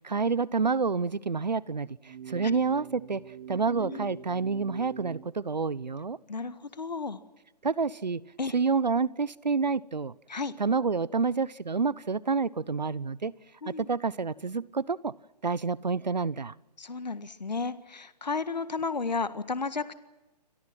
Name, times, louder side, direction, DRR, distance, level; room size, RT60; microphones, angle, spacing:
voice 1, 0.0-3.2 3.5-6.2 7.6-8.2 8.5-10.1 10.6-13.3 13.7-15.1 15.4-16.5, right 4 dB, 90° right, 21 dB, 1.0 m, -28 dB
sound 1, 2.0-5.3, right 9 dB, 55° right, 1.2 m, -43 dB
voice 2, 3.8-4.2 6.3-7.2 8.4-8.5 10.3-10.5 13.6-13.9 16.8-19.9, left 4 dB, 85° left, 11 dB, 1.7 m, -33 dB
29.5 x 23.5 x 6.0 m, 1.0 s
figure-of-eight pair, 140°, 21 cm